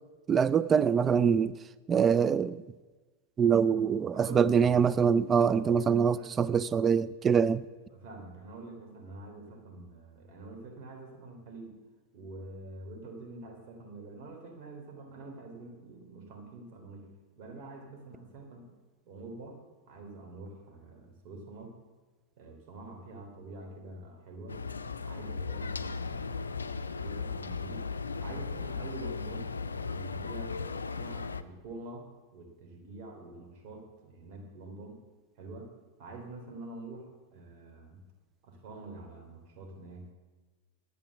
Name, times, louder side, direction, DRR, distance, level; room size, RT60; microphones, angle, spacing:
voice 1, 0.3-1.6 1.9-2.6 3.4-7.6, right 7 dB, 20° right, 0.3 m, -24 dB
voice 2, 4.1-4.8 5.4-6.3 7.9-11.8 12.1-17.1 17.4-18.7 19.0-19.6 19.9-21.8 22.4-24.6 25.0-27.9 28.2-29.5 29.8-30.6 30.9-35.0 35.4-35.7 36.0-38.0 38.4-40.1, right 2 dB, 45° right, 3.0 m, -46 dB
sound 1, 24.5-31.4, left 4 dB, 75° left, 0.4 m, -36 dB
11.5 x 8.4 x 7.0 m
figure-of-eight pair, 90°, 0 cm